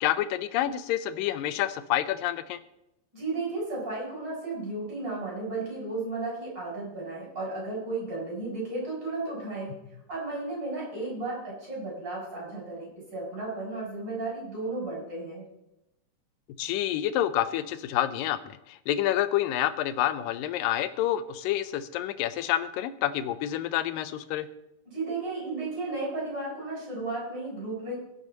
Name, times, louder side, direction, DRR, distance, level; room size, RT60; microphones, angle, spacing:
voice 1, 0.0-2.6 16.6-24.5, left 12 dB, 85° left, 13 dB, 2.4 m, -28 dB
voice 2, 3.1-9.7 10.1-15.4 24.8-28.0, right 2 dB, 30° right, -4 dB, 6.5 m, -34 dB
21.0 x 7.0 x 4.0 m, 0.87 s
omnidirectional pair, 3.9 m